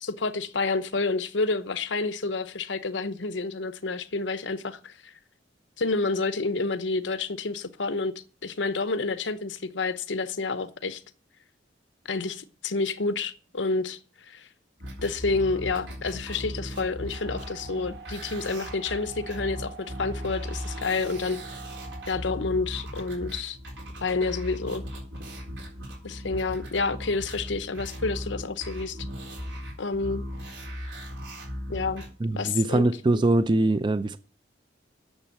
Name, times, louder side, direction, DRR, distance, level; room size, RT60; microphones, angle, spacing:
voice 1, 0.0-5.1 5.8-8.1 8.4-11.0 12.1-14.0 14.3-14.5 15.0-21.4 22.1-23.6 24.0-24.9 26.0-29.0 29.8-30.2 31.7-32.0 32.4-32.9, left 3 dB, 85° left, 0.8 m, -29 dB
sound 1, 14.8-32.1, equal, 80° right, 4.1 m, -38 dB
sound 2, 17.1-22.2, right 5 dB, 65° right, 1.3 m, -45 dB
voice 2, 32.2-34.2, right 2 dB, 25° right, 0.4 m, -23 dB
8.9 x 7.1 x 7.9 m
head